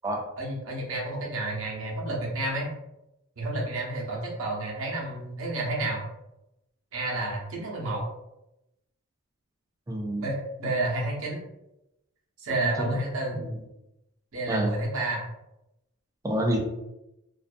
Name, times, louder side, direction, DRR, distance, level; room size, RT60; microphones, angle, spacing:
voice 1, 0.4-2.7 3.4-6.0 6.9-8.1 10.2-11.4 12.4-13.4 14.3-15.2, right 2 dB, 70° right, -2 dB, 0.7 m, -30 dB
voice 2, 9.9-10.3 12.6-13.0 13.3-13.6 14.5-14.7 16.2-16.6, right 1 dB, 15° right, 0 dB, 0.5 m, -28 dB
2.5 x 2.3 x 2.5 m, 0.89 s
head